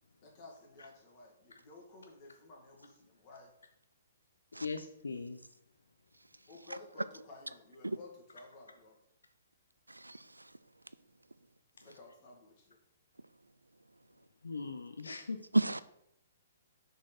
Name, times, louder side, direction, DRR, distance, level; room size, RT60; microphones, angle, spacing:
voice 1, 0.2-3.5 6.5-9.0 11.7-12.8, left 2 dB, 35° left, 1.8 m, -54 dB
voice 2, 4.5-5.4 11.8-11.9 14.4-15.4, left 4 dB, 75° left, 0.5 m, -40 dB
voice 3, 6.1-6.8 7.8-8.0 9.9-11.0 13.4-13.5 13.9-14.2 15.5-15.8, right 2 dB, 85° right, 0.3 m, -35 dB
6.1 x 4.0 x 4.4 m
figure-of-eight pair, 120°, 0 cm